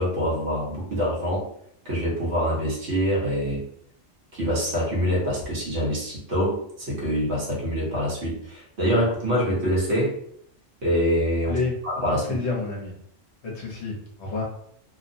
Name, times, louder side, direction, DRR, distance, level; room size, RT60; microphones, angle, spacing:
voice 1, 0.0-1.5 1.8-3.7 4.3-10.2 10.8-11.6 11.8-12.4, equal, 60° right, -5 dB, 1.2 m, -25 dB
voice 2, 12.3-12.9 13.4-14.4, left 4 dB, 65° left, -1 dB, 0.9 m, -29 dB
2.8 x 2.0 x 2.6 m, 0.69 s
omnidirectional pair, 1.3 m